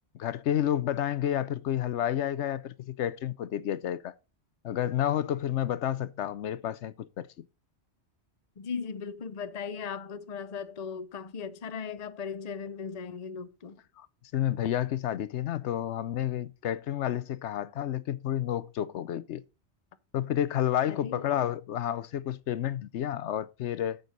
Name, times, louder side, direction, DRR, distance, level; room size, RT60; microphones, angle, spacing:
voice 1, 0.2-4.1 4.6-7.3 14.0-14.1 14.3-19.4 20.1-24.0, left 11 dB, 85° left, 0.9 m, -30 dB
voice 2, 8.6-13.8 20.9-21.2, left 6 dB, 40° left, 0.7 m, -38 dB
9.3 x 6.6 x 3.9 m
omnidirectional pair, 1.1 m